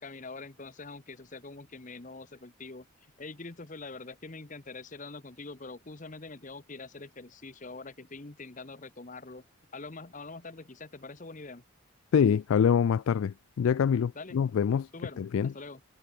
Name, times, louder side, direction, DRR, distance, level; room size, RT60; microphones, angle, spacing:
voice 1, 0.0-2.9 3.2-9.4 9.7-11.6 14.1-14.4 14.9-15.8, left 3 dB, 35° left, 1.0 m, -44 dB
voice 2, 12.1-14.9 15.2-15.5, left 7 dB, 70° left, 0.3 m, -25 dB
head